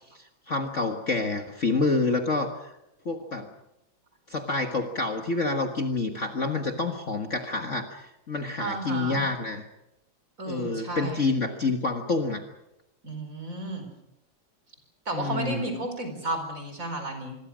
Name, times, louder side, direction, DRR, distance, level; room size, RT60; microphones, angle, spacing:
voice 1, 0.1-2.7 3.1-3.5 4.3-9.6 10.5-12.4 15.1-15.6, left 3 dB, 40° left, 4 dB, 1.7 m, -28 dB
voice 2, 8.6-9.2 10.4-11.2 13.0-13.9 15.0-17.4, right 2 dB, 40° right, 6 dB, 5.1 m, -33 dB
26.0 x 22.0 x 6.2 m, 0.87 s
omnidirectional pair, 2.2 m